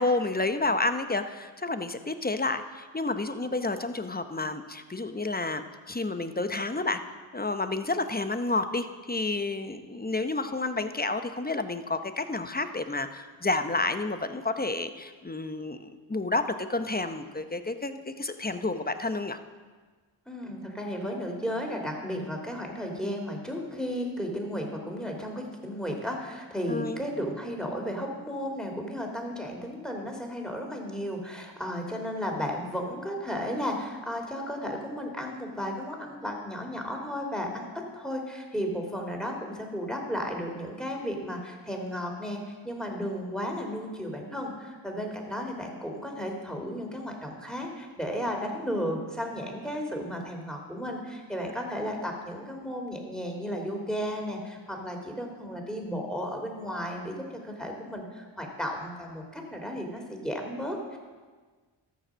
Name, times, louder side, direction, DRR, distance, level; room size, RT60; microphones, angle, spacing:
voice 1, 0.0-7.0 7.3-19.4 26.7-27.0, left 2 dB, 20° left, 9 dB, 0.9 m, -30 dB
voice 2, 20.3-37.6 37.9-57.1 57.4-61.0, equal, ahead, 1 dB, 3.1 m, -34 dB
13.5 x 6.6 x 6.3 m, 1.4 s
supercardioid pair, 40°, 48 cm